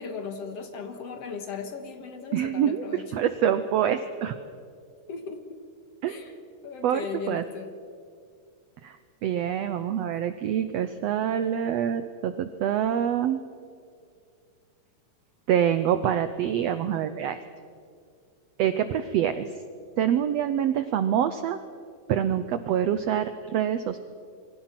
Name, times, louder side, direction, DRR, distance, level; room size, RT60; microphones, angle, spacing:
voice 1, 0.0-3.0 5.1-5.6 6.1-6.3 6.6-7.7, left 5 dB, 55° left, 7 dB, 2.2 m, -37 dB
voice 2, 2.3-4.4 6.0-6.2 6.8-7.4 8.8-9.0 9.2-13.4 15.5-17.4 18.6-19.5 20.0-21.6 22.1-24.0, right 9 dB, 85° right, 11 dB, 1.4 m, -26 dB
28.0 x 23.0 x 5.9 m, 2.3 s
omnidirectional pair, 3.9 m